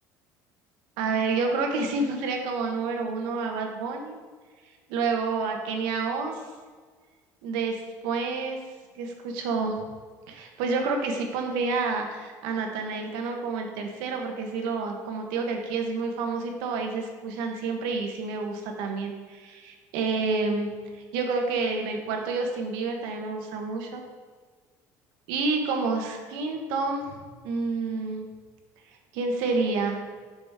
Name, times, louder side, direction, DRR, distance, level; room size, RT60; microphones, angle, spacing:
voice 1, 1.0-4.2 4.9-6.3 7.4-8.6 8.9-9.8 10.3-24.0 25.3-27.2 27.4-28.3 29.1-30.0, right 4 dB, 85° right, 3 dB, 1.1 m, -29 dB
6.6 x 6.0 x 3.6 m, 1.5 s
cardioid pair, 135°, 7 cm